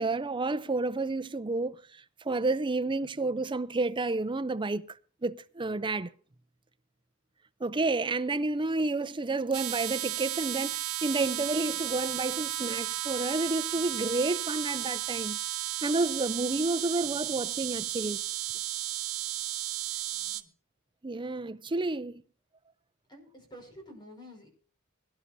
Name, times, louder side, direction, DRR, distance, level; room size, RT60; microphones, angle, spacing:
voice 1, 0.0-1.8 2.2-5.0 5.2-6.1 7.6-15.4 15.8-18.2 21.0-22.2, right 3 dB, 20° right, 0.6 m, -30 dB
sound 1, 9.5-20.4, right 13 dB, 75° right, 1.1 m, -34 dB
voice 2, 20.1-20.5 23.1-24.5, equal, 20° left, 5.7 m, -50 dB
22.5 x 11.0 x 2.7 m
head